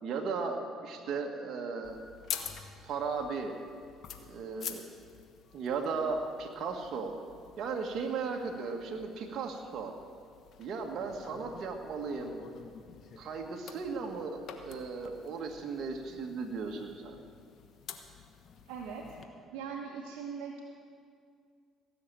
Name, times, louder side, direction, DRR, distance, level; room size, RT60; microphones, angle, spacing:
voice 1, 0.0-2.0 2.8-3.5 4.3-4.9 5.5-7.1 7.6-9.9 10.6-12.4 13.2-17.2, right 4 dB, 60° right, 2 dB, 1.5 m, -36 dB
sound 1, 1.8-19.2, left 7 dB, 60° left, 1.2 m, -48 dB
voice 2, 18.7-19.1 19.5-20.6, right 6 dB, 80° right, -1 dB, 1.2 m, -40 dB
15.5 x 6.6 x 9.0 m, 2.2 s
supercardioid pair, 65°, 0 cm